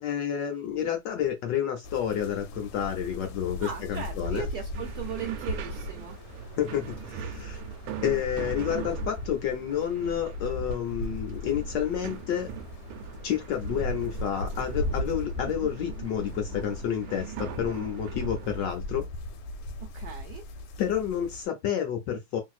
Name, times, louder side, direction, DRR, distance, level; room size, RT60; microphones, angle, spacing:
voice 1, 0.0-4.5 6.6-7.6 8.0-12.5 13.2-19.0 20.8-22.4, left 9 dB, 70° left, 1.1 m, -30 dB
sound 1, 1.8-21.5, left 1 dB, 90° left, 1.5 m, -37 dB
voice 2, 3.6-6.2 15.6-15.7 19.9-20.4, right 7 dB, 70° right, 1.0 m, -37 dB
sound 2, 4.7-18.7, right 8 dB, 85° right, 1.5 m, -42 dB
3.1 x 2.7 x 2.4 m
omnidirectional pair, 2.4 m